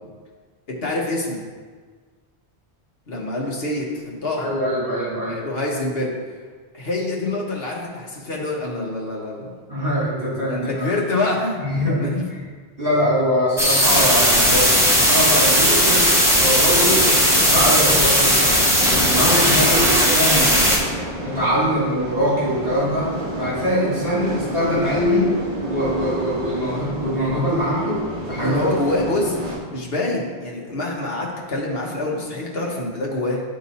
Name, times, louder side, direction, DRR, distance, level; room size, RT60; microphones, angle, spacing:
voice 1, 0.7-1.4 3.1-4.5 5.3-6.1 6.7-9.5 10.5-12.2 28.4-29.4 29.7-33.4, left 2 dB, 65° left, -3 dB, 1.5 m, -25 dB
voice 2, 4.4-5.4 9.7-10.9 11.6-12.4 12.8-16.1 16.4-18.5 18.9-20.7 21.2-23.1 23.4-25.3 25.7-28.0 28.3-28.6, equal, 60° right, -7 dB, 2.0 m, -23 dB
sound 1, 13.6-20.8, equal, 5° right, 1.2 m, -17 dB
sound 2, 14.3-29.6, right 1 dB, 30° right, 1.1 m, -30 dB
10.5 x 3.7 x 4.1 m, 1.5 s
omnidirectional pair, 1.1 m